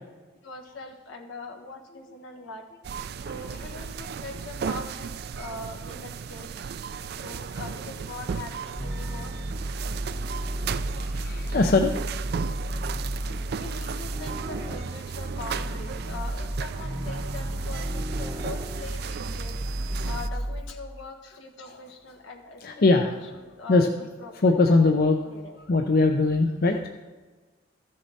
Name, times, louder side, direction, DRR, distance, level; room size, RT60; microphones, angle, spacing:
voice 1, 0.4-2.7 3.2-6.5 7.2-9.3 13.5-19.6 20.0-25.6, left 3 dB, 85° left, 1 dB, 1.5 m, -42 dB
sound 1, 2.8-20.3, right 6 dB, 55° right, 0.3 m, -36 dB
voice 2, 3.2-3.6 11.0-11.9 13.7-13.9 16.3-16.4 21.6-21.8 22.6-23.3 23.7-23.9 24.3-25.2 25.7-26.9, left 3 dB, 50° left, 4 dB, 0.6 m, -22 dB
sound 2, 8.8-20.6, right 1 dB, 15° right, 0.7 m, -32 dB
14.0 x 6.5 x 4.2 m, 1.3 s
head